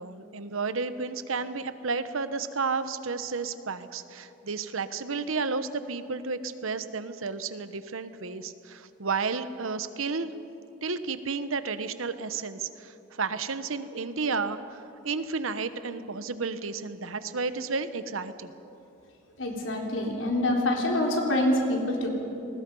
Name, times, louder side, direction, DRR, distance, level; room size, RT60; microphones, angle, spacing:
voice 1, 0.0-10.3 10.8-18.5, right 4 dB, 90° right, 12 dB, 1.1 m, -32 dB
voice 2, 19.4-22.1, left 1 dB, 70° left, 0 dB, 3.7 m, -26 dB
29.0 x 20.0 x 5.5 m, 2.9 s
head